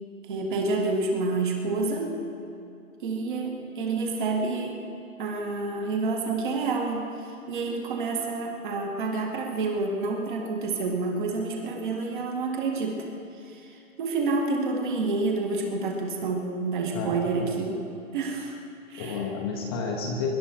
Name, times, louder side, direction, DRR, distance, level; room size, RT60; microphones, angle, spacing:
voice 1, 0.3-2.2 3.0-4.8 5.2-7.1 7.5-13.1 13.5-13.6 14.0-17.8 18.1-18.6 18.9-19.3, right 3 dB, 35° right, 1 dB, 2.1 m, -28 dB
voice 2, 16.9-17.5 19.0-20.3, left 4 dB, 15° left, 0 dB, 1.0 m, -31 dB
24.0 x 11.5 x 4.5 m, 2.6 s
hypercardioid pair, 150°, 42 cm